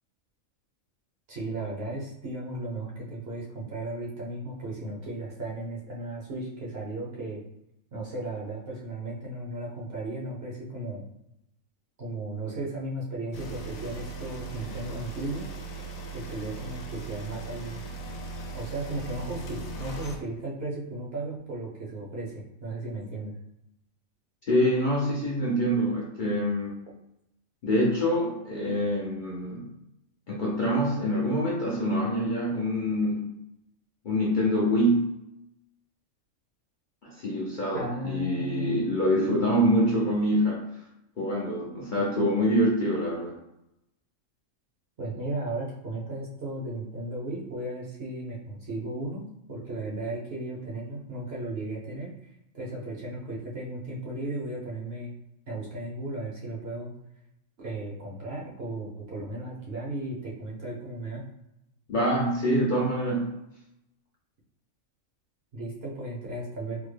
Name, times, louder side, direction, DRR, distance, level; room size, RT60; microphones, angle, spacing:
voice 1, 1.3-7.4 7.9-11.0 12.0-15.5 16.1-17.8 18.5-23.3 37.7-38.8 45.0-52.1 52.5-55.1 55.5-56.9 57.6-61.2 65.5-66.8, right 2 dB, 55° right, -4 dB, 1.0 m, -35 dB
sound 1, 13.3-20.2, right 3 dB, 90° left, 1.0 m, -38 dB
voice 2, 24.5-26.7 27.6-29.7 30.3-33.3 34.0-35.1 37.0-40.6 41.2-43.3 61.9-63.4, equal, 50° left, -5 dB, 0.6 m, -25 dB
3.5 x 2.1 x 3.2 m, 0.85 s
omnidirectional pair, 1.4 m